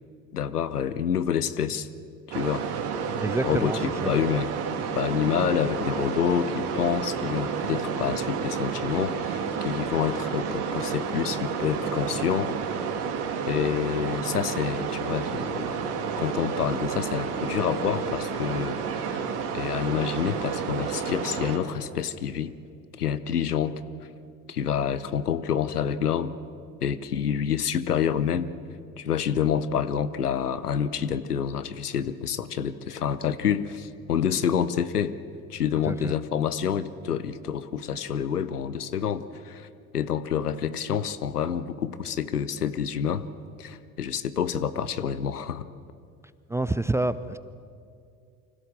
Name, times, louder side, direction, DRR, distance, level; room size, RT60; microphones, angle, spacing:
voice 1, 0.3-1.9 2.3-2.7 3.4-4.5 4.9-12.8 13.5-15.8 16.2-19.2 19.5-22.5 23.0-23.8 24.5-26.4 26.8-28.5 29.0-35.1 35.5-39.7 39.9-43.3 43.6-45.6, left 8 dB, 85° left, 14 dB, 0.8 m, -28 dB
sound 1, 2.3-21.6, right 6 dB, 60° right, 2.7 m, -30 dB
voice 2, 3.2-4.1 35.8-36.1 46.5-47.4, right 2 dB, 5° right, 15 dB, 0.4 m, -28 dB
25.0 x 15.5 x 7.4 m, 2.4 s
figure-of-eight pair, 65°, 45 cm